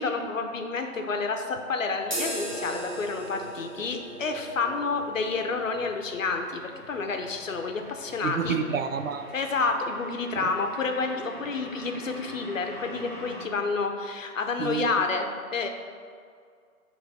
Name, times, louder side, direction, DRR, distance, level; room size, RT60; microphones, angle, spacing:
voice 1, 0.0-8.6 9.3-15.7, left 4 dB, 65° left, 5 dB, 0.8 m, -29 dB
sound 1, 2.0-9.8, right 1 dB, 35° right, 0.8 m, -40 dB
sound 2, 4.8-13.5, equal, 40° left, 0.4 m, -46 dB
voice 2, 8.2-9.3 10.4-10.5 14.6-14.9, right 6 dB, 65° right, 8 dB, 0.5 m, -29 dB
8.0 x 3.3 x 4.1 m, 2.1 s
hypercardioid pair, 175°, 43 cm